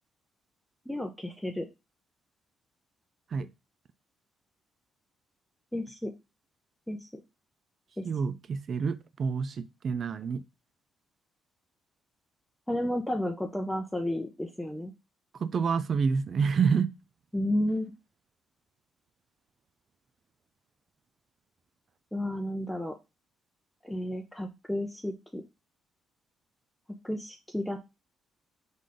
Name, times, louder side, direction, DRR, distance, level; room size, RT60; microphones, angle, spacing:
voice 1, 0.9-1.7 5.7-6.1 6.9-7.1 8.0-8.1 12.7-14.9 17.3-17.9 22.1-23.0 23.8-25.4 27.0-27.8, left 1 dB, 5° left, 0.7 m, -32 dB
voice 2, 8.0-10.4 15.4-16.9, right 5 dB, 55° right, 0.5 m, -28 dB
4.0 x 3.3 x 3.7 m
cardioid pair, 75°, 0 cm